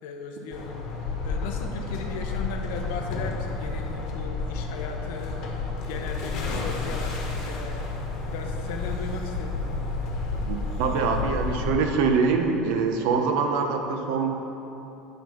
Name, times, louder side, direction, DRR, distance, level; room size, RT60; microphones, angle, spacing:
voice 1, 0.0-0.8 1.2-5.4 5.8-7.8 8.3-10.1, left 4 dB, 80° left, 3 dB, 0.9 m, -37 dB
sound 1, 0.5-11.7, left 3 dB, 50° left, 1.3 m, -31 dB
voice 2, 10.3-14.3, right 5 dB, 70° right, 4 dB, 0.8 m, -24 dB
9.4 x 3.5 x 6.7 m, 3.0 s
cardioid pair, 155°, 0 cm